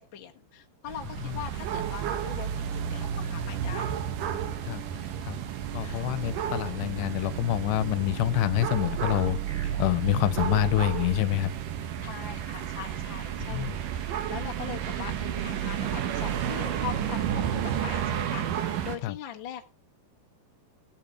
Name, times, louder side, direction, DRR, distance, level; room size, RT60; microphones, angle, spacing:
voice 1, 0.0-4.0 5.8-6.1 12.0-19.7, left 9 dB, 65° left, 1.2 m, -41 dB
sound 1, 0.9-19.0, right 9 dB, 65° right, 2.5 m, -32 dB
voice 2, 5.7-9.4 9.8-11.5 13.5-13.8 19.0-19.2, left 15 dB, 85° left, 2.9 m, -26 dB
sound 2, 5.8-6.5 8.5-9.8, right 3 dB, 85° right, 7.8 m, -43 dB
16.0 x 7.2 x 4.7 m
omnidirectional pair, 4.7 m